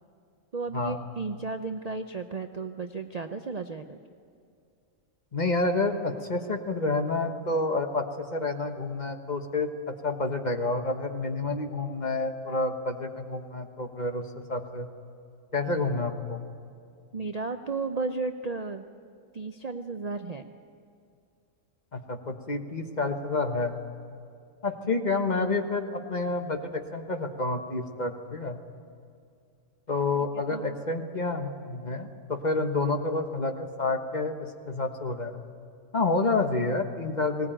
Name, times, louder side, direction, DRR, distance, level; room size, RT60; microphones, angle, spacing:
voice 1, 0.5-4.0 17.1-18.8 19.3-20.4 30.5-30.8, right 4 dB, 40° right, 6 dB, 0.6 m, -33 dB
voice 2, 5.3-14.9 15.5-16.4 21.9-23.8 24.6-28.6 29.9-35.4 35.9-37.5, left 3 dB, 35° left, 6 dB, 1.2 m, -29 dB
19.5 x 18.5 x 9.0 m, 2.4 s
omnidirectional pair, 1.4 m